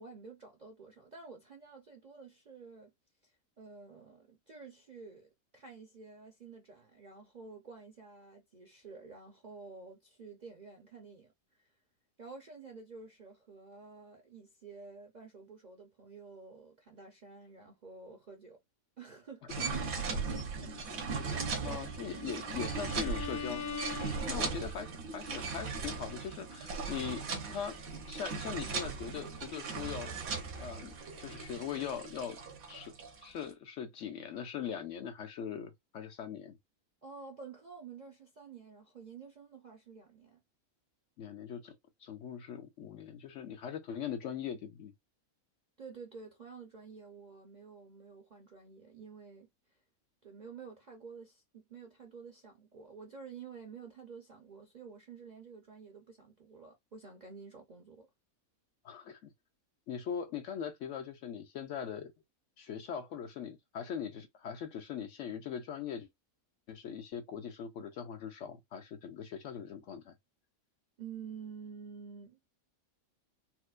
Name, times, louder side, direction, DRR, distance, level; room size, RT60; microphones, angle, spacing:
voice 1, 0.0-2.9 3.2-11.7 12.2-18.6 19.0-19.5 24.2-24.5 37.0-40.4 45.8-49.5 50.2-58.1 71.0-72.4, right 5 dB, 50° right, 0.5 m, -50 dB
sound 1, 19.5-33.4, right 4 dB, 70° right, 1.3 m, -38 dB
voice 2, 20.6-24.9 25.1-27.2 27.5-27.8 28.1-30.2 30.6-32.4 32.7-32.9 33.2-36.6 41.2-41.8 42.0-44.9 58.8-59.3 59.9-62.1 62.6-66.1 66.7-70.1, left 8 dB, 70° left, 0.8 m, -41 dB
Bowed string instrument, 21.7-24.8, left 6 dB, 90° left, 1.4 m, -43 dB
4.3 x 2.1 x 2.4 m
omnidirectional pair, 1.5 m